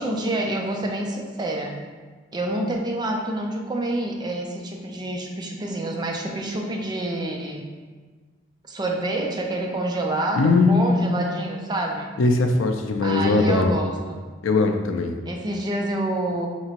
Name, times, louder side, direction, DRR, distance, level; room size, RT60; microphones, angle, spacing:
voice 1, 0.0-1.8 2.3-7.7 8.7-12.1 13.0-14.2 15.2-16.5, right 1 dB, 20° right, 1 dB, 0.4 m, -27 dB
voice 2, 10.4-11.3 12.2-13.7 14.4-15.2, left 3 dB, 85° left, 4 dB, 0.4 m, -20 dB
4.3 x 2.9 x 2.9 m, 1.4 s
head